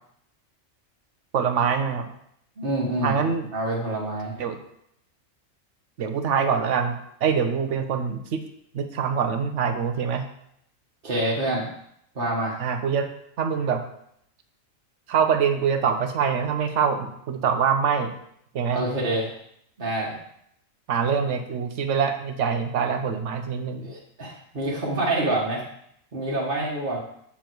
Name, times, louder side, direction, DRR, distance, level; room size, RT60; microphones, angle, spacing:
voice 1, 1.3-2.1 3.0-3.5 4.4-4.6 6.0-8.4 8.7-10.3 12.6-13.1 13.4-13.8 15.1-18.1 18.5-18.8 20.9-23.9, right 6 dB, 65° right, 7 dB, 1.2 m, -24 dB
voice 2, 2.6-3.2 3.5-4.3 11.0-11.7 12.1-12.6 18.7-19.3 19.8-20.1 23.8-25.6 26.1-27.0, right 1 dB, 45° right, -5 dB, 1.6 m, -26 dB
7.3 x 7.2 x 4.6 m, 0.72 s
omnidirectional pair, 1.4 m